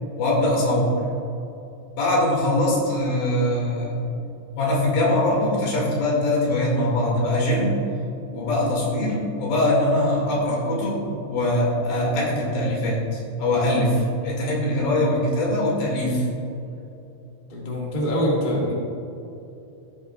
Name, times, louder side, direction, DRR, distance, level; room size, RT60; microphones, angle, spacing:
voice 1, 0.2-0.9 2.0-4.0 4.6-7.7 8.3-16.3, left 1 dB, 90° left, -3 dB, 4.0 m, -22 dB
voice 2, 17.5-18.7, equal, 25° left, -4 dB, 1.0 m, -24 dB
14.0 x 9.3 x 2.4 m, 2.8 s
omnidirectional pair, 4.0 m